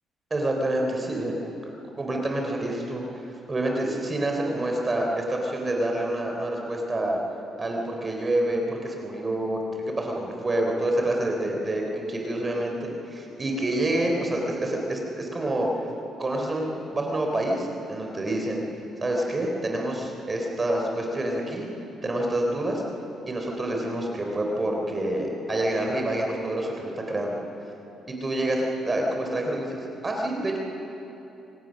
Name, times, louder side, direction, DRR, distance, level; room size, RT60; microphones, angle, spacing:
voice 1, 0.3-1.4 2.0-7.2 7.6-15.7 16.2-18.6 19.0-21.7 22.0-22.8 23.3-27.4 28.1-30.6, right 1 dB, 30° right, 1 dB, 3.7 m, -27 dB
26.0 x 18.0 x 6.5 m, 3.0 s
cardioid pair, 90°, 0 cm